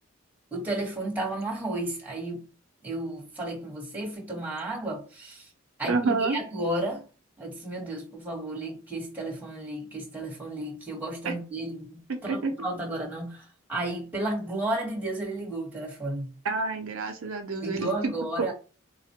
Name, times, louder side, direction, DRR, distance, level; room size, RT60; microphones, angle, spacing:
voice 1, 0.5-2.4 2.8-5.5 5.8-7.0 7.4-16.3 17.6-18.5, right 1 dB, 10° right, 1.1 m, -33 dB
voice 2, 5.9-6.4 11.2-11.3 12.1-12.5 16.4-18.1 18.4-18.5, right 4 dB, 75° right, 0.5 m, -28 dB
3.9 x 2.1 x 2.8 m
head